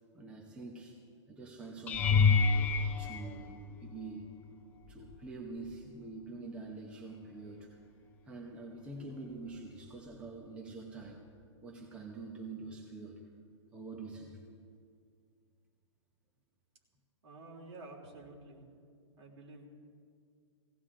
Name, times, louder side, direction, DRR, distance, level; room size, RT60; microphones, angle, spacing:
voice 1, 0.1-1.0 1.3-2.6 3.0-4.3 4.9-7.8 8.3-11.2 11.6-13.2 13.7-14.4, right 3 dB, 5° right, 0 dB, 0.8 m, -45 dB
sound 1, 1.9-4.1 4.8-5.3 5.6-5.8 10.1-10.2, left 5 dB, 10° left, 0.4 m, -28 dB
voice 2, 17.2-18.6 19.2-19.7, right 2 dB, 60° right, -1 dB, 3.5 m, -50 dB
18.5 x 16.5 x 3.8 m, 2.2 s
hypercardioid pair, 165°, 15 cm